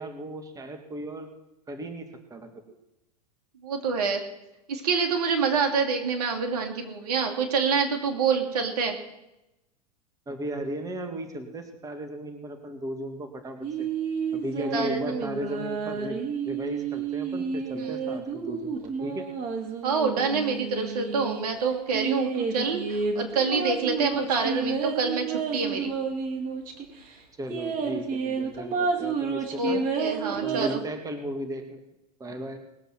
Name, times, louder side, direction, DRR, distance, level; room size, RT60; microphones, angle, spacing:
voice 1, 0.0-1.3 1.7-2.5 10.3-13.9 14.3-19.3 27.4-29.8 30.3-31.8 32.2-32.6, right 1 dB, 15° right, 5 dB, 1.9 m, -36 dB
voice 2, 3.6-4.2 4.7-9.0 14.7-15.2 17.8-17.9 19.8-26.0 29.5-30.8, right 5 dB, 65° right, 3 dB, 2.8 m, -27 dB
sound 1, 13.6-21.4 21.9-26.9 27.1-27.2 27.5-30.8, right 5 dB, 40° right, 2.9 m, -30 dB
20.0 x 8.0 x 6.0 m, 0.92 s
figure-of-eight pair, 90°, 21 cm